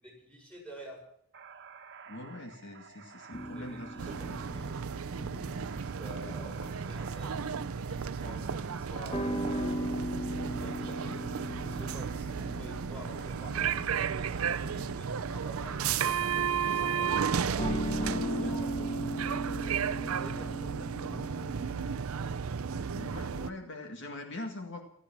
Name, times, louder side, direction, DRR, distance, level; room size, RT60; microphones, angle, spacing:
voice 1, 0.0-1.0 3.5-4.8 5.9-9.9 10.5-16.2 16.7-18.7 19.2-20.7, right 1 dB, 5° left, -1 dB, 6.7 m, -49 dB
sound 1, 1.3-16.3, right 6 dB, 55° right, 1.4 m, -51 dB
voice 2, 2.1-4.4 22.7-24.8, left 2 dB, 55° left, 4 dB, 1.9 m, -43 dB
sound 2, 3.3-22.0, equal, 25° left, 1.4 m, -39 dB
sound 3, 4.0-23.5, right 7 dB, 75° right, 0.6 m, -34 dB
16.5 x 13.5 x 6.0 m, 0.68 s
head